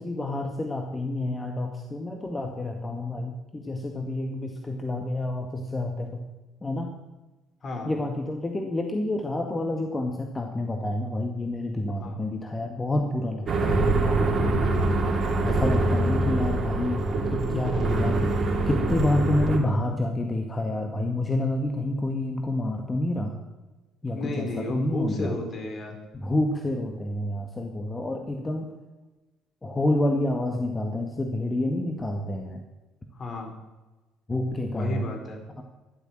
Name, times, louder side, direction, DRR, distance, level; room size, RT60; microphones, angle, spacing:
voice 1, 0.0-6.2 6.6-6.9 7.9-14.7 15.4-23.4 24.0-25.3 26.1-28.7 29.6-32.6 34.3-35.1 35.6-35.7, left 1 dB, 20° left, 3 dB, 2.0 m, -28 dB
sound 1, 13.5-19.6, right 2 dB, 40° right, 3.6 m, -24 dB
voice 2, 24.1-25.9 33.1-33.5 34.7-35.4, left 2 dB, 40° left, 3 dB, 4.6 m, -33 dB
12.0 x 12.0 x 7.7 m, 1.1 s
hypercardioid pair, 55°, 0 cm